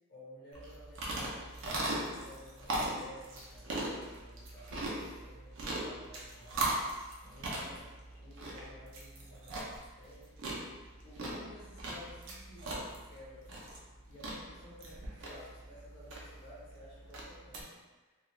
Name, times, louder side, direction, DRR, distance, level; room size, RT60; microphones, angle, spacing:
voice 1, 0.1-5.5 5.8-7.9 8.2-10.3 11.0-13.6 14.1-18.2, left 1 dB, 50° left, -8 dB, 0.9 m, -54 dB
sound 1, 0.5-17.6, right 1 dB, 60° right, 0.5 m, -39 dB
2.3 x 2.3 x 3.0 m, 1.3 s
head